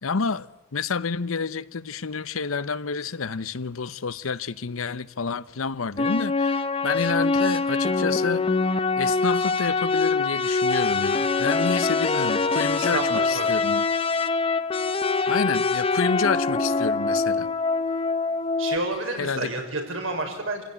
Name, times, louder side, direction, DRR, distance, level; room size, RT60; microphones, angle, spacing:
voice 1, 0.0-8.4 9.0-13.9 15.3-17.5 19.2-19.5, left 5 dB, 85° left, 0.8 m, -29 dB
sound 1, 6.0-18.8, left 4 dB, 25° left, 0.7 m, -24 dB
voice 2, 12.7-13.6 18.6-20.6, right 2 dB, 75° right, 5.4 m, -30 dB
27.0 x 16.5 x 9.9 m
head